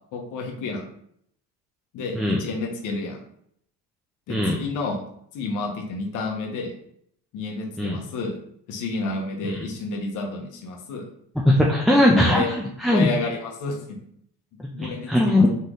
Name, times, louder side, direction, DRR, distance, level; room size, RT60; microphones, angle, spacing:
voice 1, 0.1-0.8 1.9-3.2 4.3-5.0 5.3-6.7 7.3-8.3 8.7-11.0 12.2-12.5 12.9-14.0 14.7-15.5, left 3 dB, 60° left, 1 dB, 1.2 m, -30 dB
voice 2, 4.3-4.6 7.8-8.0 9.4-9.7 11.4-13.1 14.8-15.5, left 1 dB, ahead, -1 dB, 0.5 m, -20 dB
4.2 x 3.1 x 3.8 m, 0.70 s
cardioid pair, 115°, 34 cm